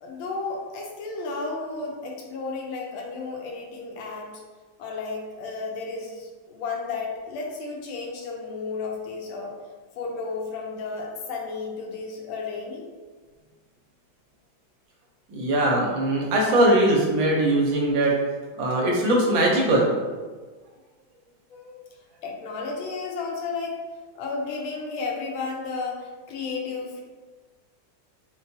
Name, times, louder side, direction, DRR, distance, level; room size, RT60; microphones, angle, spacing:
voice 1, 0.0-4.4 4.8-9.6 10.0-12.9 21.5-21.8 22.2-23.8 24.1-27.0, left 4 dB, 85° left, -1 dB, 1.4 m, -33 dB
voice 2, 15.3-18.1 18.6-19.9, right 1 dB, 75° right, -2 dB, 1.4 m, -21 dB
4.0 x 2.2 x 2.6 m, 1.4 s
omnidirectional pair, 2.2 m